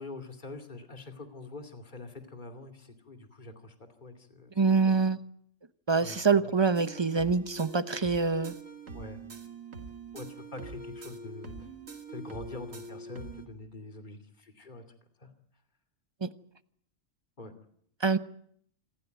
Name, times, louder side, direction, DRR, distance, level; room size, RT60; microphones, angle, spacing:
voice 1, 0.0-3.7 4.0-5.0 6.0-6.5 8.9-9.2 10.1-11.7 12.1-14.8 15.2-15.3 17.4-17.5, left 2 dB, 35° left, 2.8 m, -45 dB
voice 2, 4.6-5.2 5.9-8.6 16.2-16.3 18.0-18.2, right 4 dB, 25° right, 0.9 m, -25 dB
sound 1, 6.8-13.5, right 2 dB, 80° right, 2.7 m, -44 dB
27.0 x 15.0 x 9.3 m
omnidirectional pair, 1.3 m